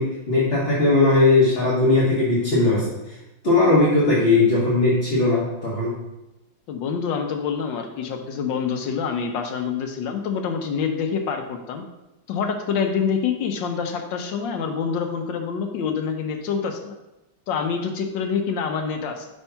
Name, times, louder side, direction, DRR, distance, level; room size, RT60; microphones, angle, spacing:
voice 1, 0.0-3.2 3.4-5.9, left 2 dB, 35° left, -7 dB, 1.2 m, -19 dB
voice 2, 6.7-11.8 12.3-16.9 17.5-19.3, left 6 dB, 75° left, 4 dB, 1.2 m, -26 dB
5.4 x 3.5 x 5.5 m, 0.97 s
omnidirectional pair, 2.2 m